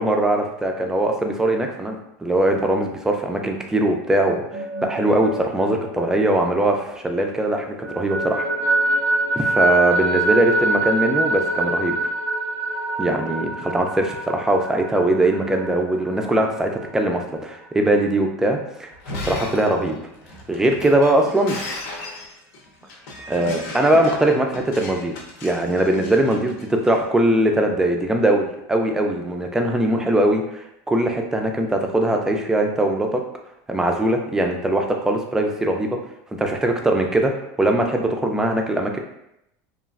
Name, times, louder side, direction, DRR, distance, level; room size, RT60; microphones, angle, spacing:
voice 1, 0.0-4.4 4.8-8.5 9.4-12.0 13.0-18.9 19.2-20.0 20.5-21.6 23.3-25.2 25.4-33.2 33.7-36.0 36.3-37.3 37.6-39.0, right 1 dB, 5° right, 3 dB, 0.3 m, -21 dB
sound 1, 4.4-7.2 7.5-17.0, right 2 dB, 85° right, 0.7 m, -25 dB
Shatter, 18.9-27.0, left 2 dB, 75° left, 0.7 m, -36 dB
3.0 x 2.4 x 2.4 m, 0.81 s
supercardioid pair, 140°, 8 cm